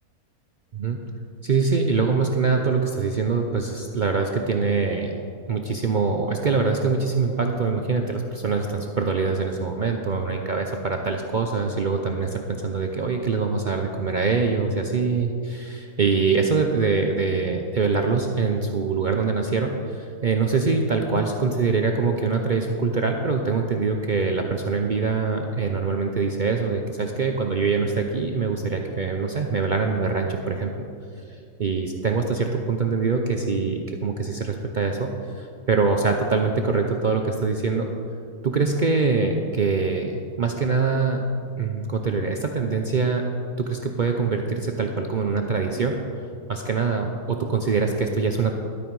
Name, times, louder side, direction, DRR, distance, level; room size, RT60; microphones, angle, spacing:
voice 1, 1.4-5.1 5.5-30.9 31.3-37.9 38.4-41.2 41.6-43.2 43.6-45.9 46.5-48.5, right 4 dB, 55° right, 3 dB, 0.5 m, -24 dB
12.0 x 8.9 x 4.7 m, 2.5 s
omnidirectional pair, 1.6 m